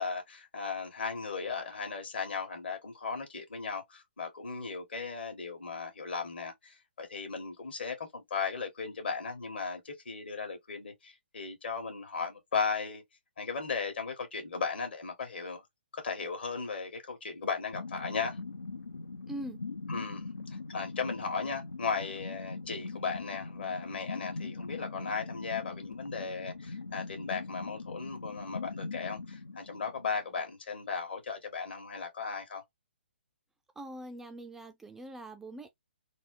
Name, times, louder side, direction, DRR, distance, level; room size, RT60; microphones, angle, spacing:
voice 1, 0.0-13.0 13.4-15.6 15.9-18.4 19.9-20.3 20.7-32.6, left 5 dB, 65° left, 1.7 m, -36 dB
sound 1, 17.7-30.4, left 3 dB, 85° left, 0.4 m, -41 dB
voice 2, 19.3-19.6 33.8-35.7, right 1 dB, 5° right, 0.3 m, -42 dB
3.9 x 2.0 x 3.1 m
figure-of-eight pair, 135°, 6 cm